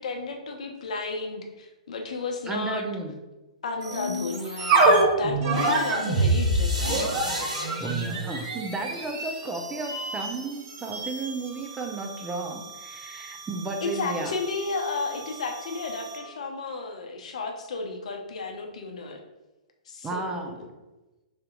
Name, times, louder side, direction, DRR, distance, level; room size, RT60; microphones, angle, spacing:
voice 1, 0.0-2.9 3.6-7.0 13.8-19.2 19.9-20.7, left 3 dB, 65° left, 4 dB, 0.6 m, -33 dB
voice 2, 2.5-3.1 7.8-14.3 20.0-20.6, right 3 dB, 15° right, 3 dB, 0.5 m, -33 dB
sound 1, 3.8-16.3, right 2 dB, 40° right, 0.9 m, -28 dB
sound 2, 5.5-9.6, right 1 dB, 90° right, 0.9 m, -36 dB
3.4 x 2.7 x 3.8 m, 1.1 s
hypercardioid pair, 120°, 4 cm